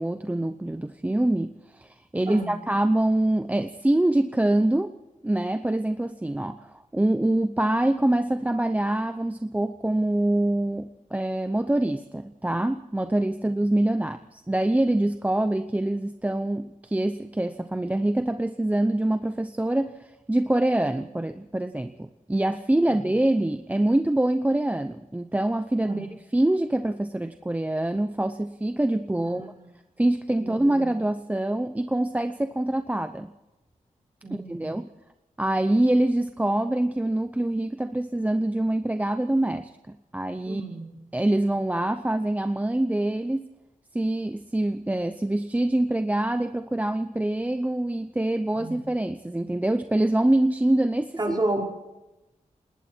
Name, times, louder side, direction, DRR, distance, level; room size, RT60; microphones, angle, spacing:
voice 1, 0.0-5.0 5.2-26.1 26.3-29.5 30.0-33.3 34.5-34.9 35.4-39.7 40.1-40.6 41.1-43.5 43.9-51.4, right 1 dB, 10° right, 9 dB, 0.8 m, -25 dB
voice 2, 29.2-29.7 30.4-30.9 34.2-34.8 40.5-41.0 48.5-48.8 51.2-51.6, right 2 dB, 30° right, -1 dB, 5.4 m, -31 dB
29.5 x 19.5 x 4.5 m, 1.0 s
wide cardioid pair, 140°, 14 cm